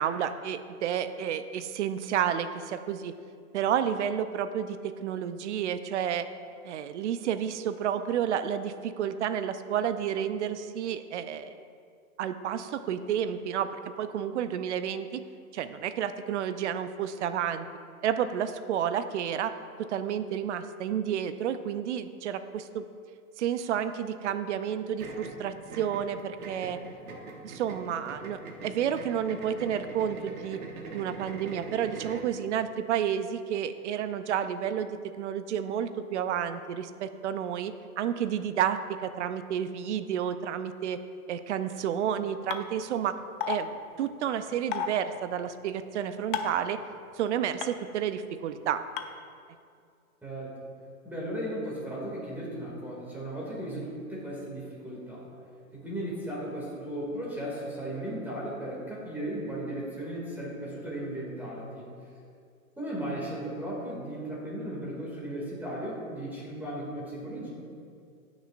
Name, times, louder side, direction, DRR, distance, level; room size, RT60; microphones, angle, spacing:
voice 1, 0.0-3.1 3.5-6.3 6.6-11.6 12.2-15.2 15.5-17.7 18.0-19.5 19.8-22.9 23.4-26.8 27.4-30.6 30.9-34.9 35.2-41.0 41.3-43.2 43.5-43.7 44.0-46.8 47.2-48.8, right 9 dB, 55° right, 11 dB, 0.6 m, -30 dB
sound 1, 25.0-32.3, right 3 dB, 75° right, 1.3 m, -42 dB
sound 2, 42.5-42.6 43.4-43.6 44.7-44.9 46.3-46.6 47.6-47.7 49.0-49.1, left 10 dB, 40° left, 0.5 m, -29 dB
voice 2, 50.2-50.5 51.0-55.3 55.7-61.9 62.8-67.5, right 1 dB, 5° right, -6 dB, 2.2 m, -36 dB
17.5 x 6.3 x 2.5 m, 2.3 s
hypercardioid pair, 135°, 43 cm